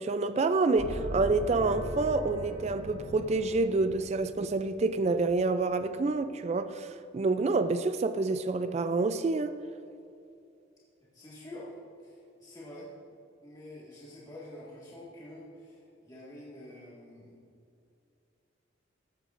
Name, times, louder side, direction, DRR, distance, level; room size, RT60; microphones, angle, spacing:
voice 1, 0.0-9.6, right 3 dB, 35° right, 0.3 m, -28 dB
sound 1, 0.8-5.5, equal, 80° right, 2.3 m, -40 dB
voice 2, 11.1-11.7 12.0-17.4, left 1 dB, 20° left, 1.9 m, -47 dB
14.5 x 13.0 x 2.6 m
head